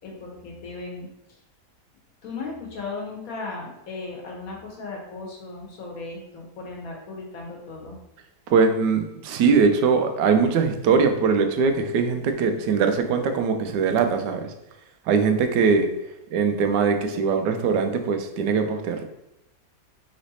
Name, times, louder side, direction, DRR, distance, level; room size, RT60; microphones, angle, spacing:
voice 1, 0.0-1.1 2.2-8.0, left 3 dB, 60° left, -1 dB, 1.3 m, -36 dB
voice 2, 8.5-14.5 15.1-15.9 16.3-19.0, right 5 dB, 85° right, 6 dB, 1.2 m, -21 dB
3.9 x 3.1 x 4.0 m, 0.86 s
omnidirectional pair, 1.8 m